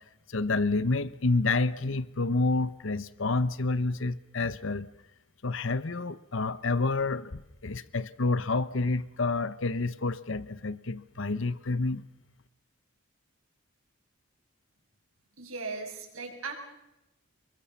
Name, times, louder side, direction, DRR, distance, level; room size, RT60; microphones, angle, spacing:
voice 1, 0.3-4.9 5.4-12.0, left 3 dB, 60° left, 16 dB, 0.9 m, -29 dB
voice 2, 15.4-16.5, right 4 dB, 70° right, 2 dB, 6.5 m, -37 dB
29.5 x 22.0 x 7.0 m, 0.90 s
head